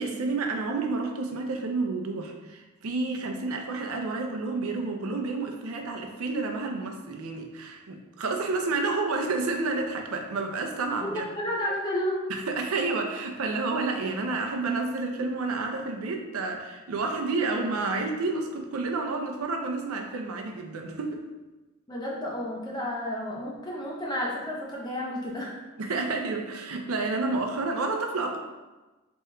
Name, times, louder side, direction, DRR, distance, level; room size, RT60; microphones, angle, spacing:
voice 1, 0.0-11.3 12.3-21.2 25.8-28.4, right 3 dB, 90° right, 3 dB, 0.5 m, -30 dB
voice 2, 11.0-12.2 21.9-25.6, left 1 dB, 20° left, -3 dB, 0.7 m, -31 dB
4.4 x 3.4 x 2.2 m, 1.2 s
head